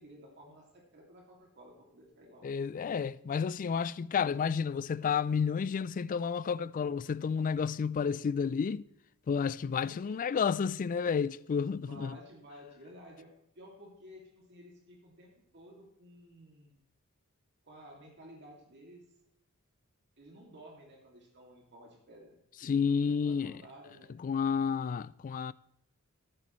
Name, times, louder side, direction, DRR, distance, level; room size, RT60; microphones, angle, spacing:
voice 1, 0.0-2.5 9.8-10.4 11.7-13.3 13.6-16.8 17.6-19.0 20.2-22.3 22.6-22.7 23.0-24.1, equal, 55° right, 2.4 m, -53 dB
voice 2, 2.4-8.8 9.3-12.2 22.6-23.6 24.2-25.5, left 6 dB, 40° left, 0.3 m, -31 dB
14.0 x 9.3 x 3.1 m
head